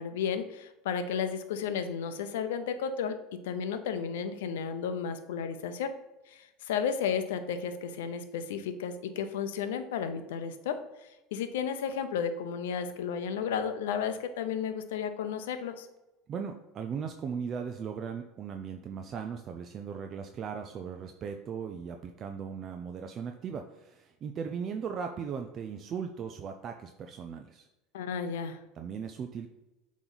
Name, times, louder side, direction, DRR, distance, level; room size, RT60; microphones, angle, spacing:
voice 1, 0.0-3.2 3.4-5.9 6.3-15.9 27.9-28.6, left 7 dB, 90° left, 10 dB, 0.6 m, -33 dB
voice 2, 16.3-27.7 28.8-29.5, right 6 dB, 40° right, 5 dB, 0.4 m, -38 dB
7.8 x 3.1 x 4.0 m, 1.0 s
supercardioid pair, 105°, 0 cm